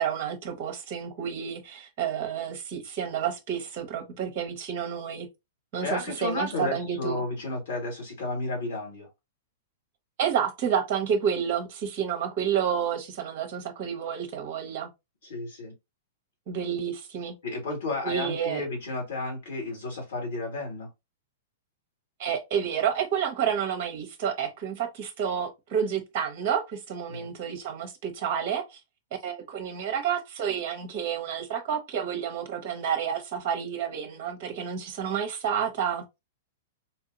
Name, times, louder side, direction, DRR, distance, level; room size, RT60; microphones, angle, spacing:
voice 1, 0.0-5.3 5.7-7.2 10.2-14.9 16.5-17.3 18.0-18.6 22.2-28.8 29.2-36.2, right 8 dB, 40° right, 0.9 m, -30 dB
voice 2, 5.8-9.1 15.2-15.7 17.4-20.9 27.1-27.3, left 2 dB, 60° left, 2.1 m, -32 dB
4.3 x 2.7 x 2.6 m
figure-of-eight pair, 105°, 0 cm